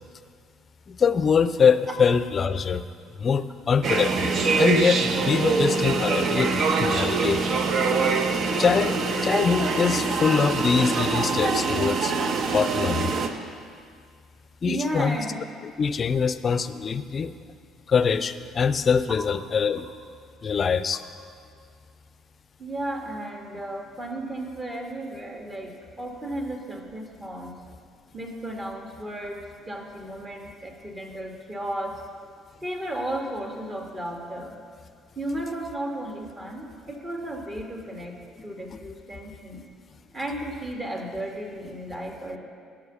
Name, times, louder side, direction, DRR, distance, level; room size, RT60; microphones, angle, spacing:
voice 1, 0.9-2.8 3.2-7.6 8.6-12.1 12.5-13.2 14.6-15.2 15.8-17.3 17.9-19.9 20.4-21.0, left 6 dB, 40° left, 14 dB, 0.4 m, -23 dB
sound 1, 3.8-13.3, right 4 dB, 55° right, 0.7 m, -24 dB
voice 2, 14.7-15.4 19.1-19.2 22.6-27.6 28.1-32.0 32.6-34.6 35.2-38.1 38.4-39.7 40.1-42.4, right 1 dB, 30° right, 1 dB, 1.9 m, -34 dB
11.0 x 6.0 x 6.8 m, 2.1 s
hypercardioid pair, 55°, 0 cm